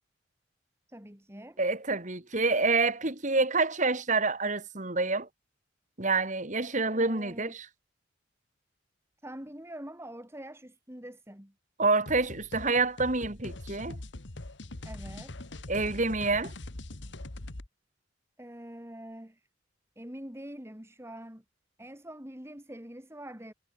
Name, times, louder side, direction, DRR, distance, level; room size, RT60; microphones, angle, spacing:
voice 1, 0.9-1.6 6.9-7.5 9.2-11.5 14.8-15.4 18.4-19.5 20.0-21.4 21.8-23.5, right 1 dB, 15° right, 2.8 m, -44 dB
voice 2, 1.6-5.3 6.0-7.7 11.8-14.0 15.7-16.5, right 3 dB, 40° right, 2.6 m, -27 dB
sound 1, 12.1-17.7, left 2 dB, 65° left, 1.7 m, -42 dB
head